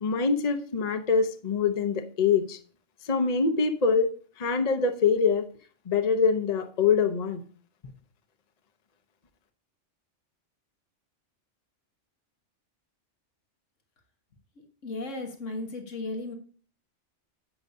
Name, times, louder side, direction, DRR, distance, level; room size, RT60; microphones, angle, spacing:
voice 1, 0.0-2.6 3.1-4.1 4.4-5.5 5.9-7.4, left 5 dB, 35° left, 7 dB, 0.9 m, -24 dB
voice 2, 14.8-16.4, left 2 dB, 90° left, 3 dB, 1.8 m, -35 dB
11.0 x 7.9 x 2.6 m, 0.42 s
omnidirectional pair, 1.2 m